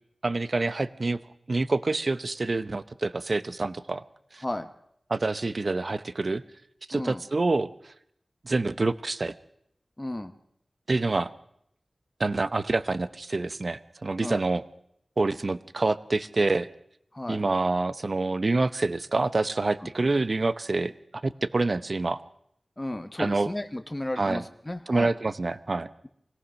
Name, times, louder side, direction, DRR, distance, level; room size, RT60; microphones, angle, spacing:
voice 1, 0.2-1.2 1.5-4.0 4.3-4.4 5.1-6.4 6.9-7.7 8.4-9.3 10.9-11.3 12.2-14.6 15.2-16.7 17.3-22.2 23.2-23.5 24.2-24.4 24.9-25.9, right 3 dB, 55° right, 15 dB, 0.8 m, -27 dB
voice 2, 6.9-7.2 10.0-10.3 14.2-14.4 17.1-17.4 22.8-25.1, left 1 dB, 20° left, 7 dB, 1.1 m, -33 dB
24.0 x 18.0 x 6.3 m, 0.74 s
wide cardioid pair, 80°, 0 cm